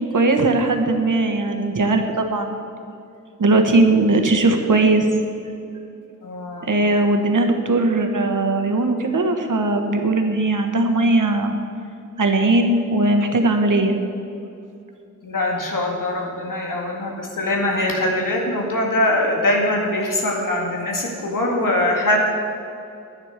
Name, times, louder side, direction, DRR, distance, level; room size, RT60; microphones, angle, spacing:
voice 1, 0.0-2.6 3.4-5.2 6.6-11.5 12.2-14.0, right 2 dB, 75° right, 5 dB, 1.3 m, -19 dB
voice 2, 6.2-6.7 15.2-22.2, left 1 dB, 90° left, -1 dB, 2.1 m, -22 dB
11.0 x 9.1 x 6.6 m, 2.7 s
wide cardioid pair, 55°, 31 cm